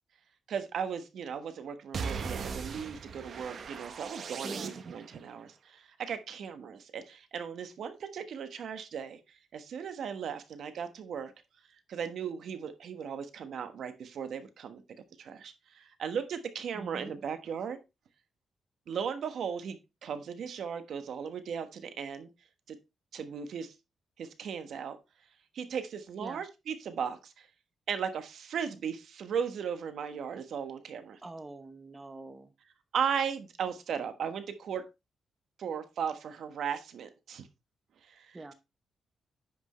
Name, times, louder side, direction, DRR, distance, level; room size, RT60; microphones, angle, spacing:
voice 1, 0.5-9.2 9.5-11.3 11.9-14.8 15.2-17.8 18.9-22.3 22.7-22.8 23.1-23.7 24.2-25.0 25.5-27.5 27.9-31.2 32.9-34.9 35.6-37.5 38.1-38.5, right 7 dB, 70° right, 9 dB, 1.2 m, -36 dB
sound 1, 1.9-5.2, right 5 dB, 55° right, 0.9 m, -38 dB
voice 2, 4.4-4.7 16.7-17.1 26.2-26.5 31.2-32.5 38.3-38.5, right 2 dB, 20° right, 10 dB, 0.8 m, -44 dB
9.9 x 6.2 x 3.1 m, 0.24 s
cardioid pair, 120°, 0 cm